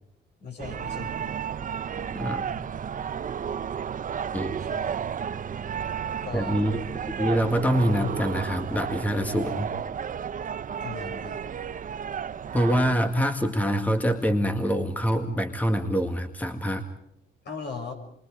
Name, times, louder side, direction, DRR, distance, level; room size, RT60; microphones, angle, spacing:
voice 1, 0.4-1.3 4.6-4.9 6.0-6.6 10.8-11.4 17.4-17.9, left 4 dB, 60° left, 3 dB, 6.5 m, -38 dB
sound 1, 0.6-12.9, right 7 dB, 40° right, 0.8 m, -32 dB
voice 2, 6.3-6.8 7.1-9.7 12.5-16.8, equal, 10° left, 6 dB, 1.9 m, -25 dB
27.5 x 23.5 x 5.0 m, 0.77 s
cardioid pair, 90°, 20 cm